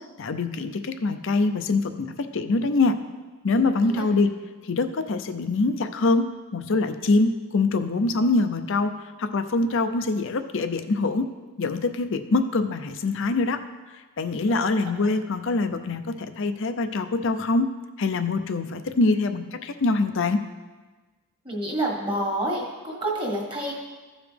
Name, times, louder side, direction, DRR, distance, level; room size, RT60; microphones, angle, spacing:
voice 1, 0.2-3.0 3.4-4.3 4.6-6.3 6.5-8.9 9.2-11.2 11.6-13.6 14.2-16.0 16.4-17.7 18.0-20.4, left 3 dB, 60° left, 9 dB, 0.5 m, -24 dB
voice 2, 3.5-4.1 14.5-15.1 21.4-23.7, right 1 dB, 20° right, -2 dB, 1.6 m, -29 dB
15.0 x 5.1 x 3.4 m, 1.3 s
head